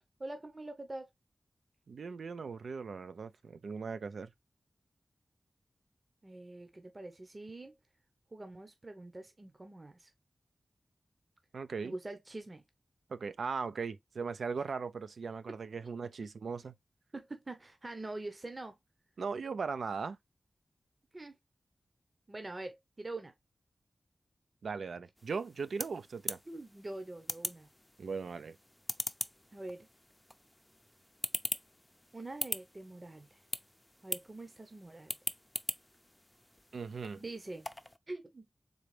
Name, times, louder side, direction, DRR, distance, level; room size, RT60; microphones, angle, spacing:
voice 1, 0.2-1.1 6.2-7.7 8.3-10.1 11.8-12.6 17.1-18.7 21.1-21.4 22.3-23.3 26.5-27.7 29.5-29.9 32.1-33.4 34.0-35.2 37.2-37.7 38.1-38.4, right 2 dB, 40° right, 0.8 m, -44 dB
voice 2, 1.9-4.3 11.5-11.9 13.1-16.7 19.2-20.2 24.6-26.4 28.0-28.6 36.7-37.2, right 5 dB, 85° right, 0.4 m, -38 dB
sound 1, 25.2-38.0, left 1 dB, 15° left, 0.5 m, -42 dB
3.9 x 3.4 x 3.2 m
cardioid pair, 50°, 0 cm